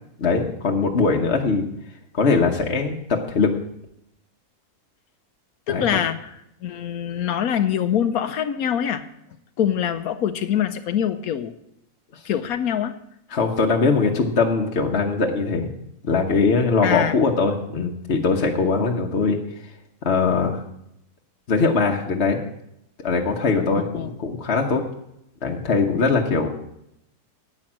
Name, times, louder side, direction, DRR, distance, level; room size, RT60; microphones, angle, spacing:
voice 1, 0.2-1.6 2.1-3.5 5.7-6.0 12.1-12.2 13.3-15.7 16.0-19.4 20.0-20.6 21.5-22.4 23.0-24.8 25.4-26.5, left 4 dB, 45° left, 1 dB, 1.3 m, -21 dB
voice 2, 5.7-9.1 9.6-11.5 12.2-13.0 16.8-17.2 23.9-24.1, left 9 dB, 70° left, 11 dB, 1.1 m, -24 dB
10.5 x 8.9 x 7.4 m, 0.80 s
omnidirectional pair, 1.7 m